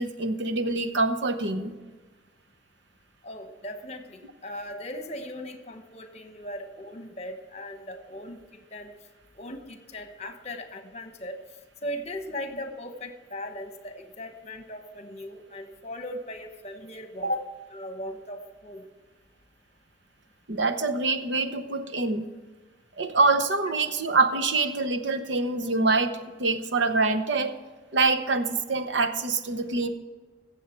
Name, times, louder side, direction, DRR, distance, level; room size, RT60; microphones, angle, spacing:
voice 1, 0.0-1.8 17.2-17.3 20.5-22.3 23.0-27.5 27.9-29.9, right 3 dB, 90° right, 7 dB, 0.9 m, -25 dB
voice 2, 3.2-8.4 8.7-8.9 9.4-11.4 11.8-18.8, left 1 dB, 35° left, 6 dB, 1.1 m, -38 dB
15.5 x 7.3 x 4.5 m, 1.3 s
head